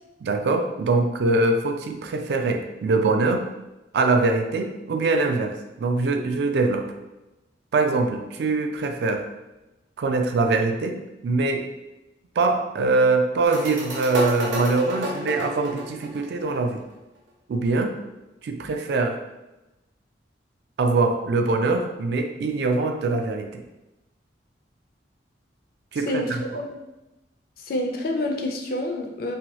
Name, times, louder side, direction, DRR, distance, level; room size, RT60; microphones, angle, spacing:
voice 1, 0.2-3.5 3.9-6.9 7.7-9.3 10.0-11.7 12.4-16.8 17.5-18.0 18.4-19.2 20.8-23.6 25.9-26.6, right 3 dB, 65° right, 6 dB, 0.3 m, -23 dB
sound 1, 13.4-16.9, equal, 80° right, 0.7 m, -30 dB
voice 2, 26.1-26.7 27.7-29.4, left 1 dB, 55° left, 3 dB, 0.4 m, -27 dB
2.8 x 2.2 x 3.0 m, 0.98 s
head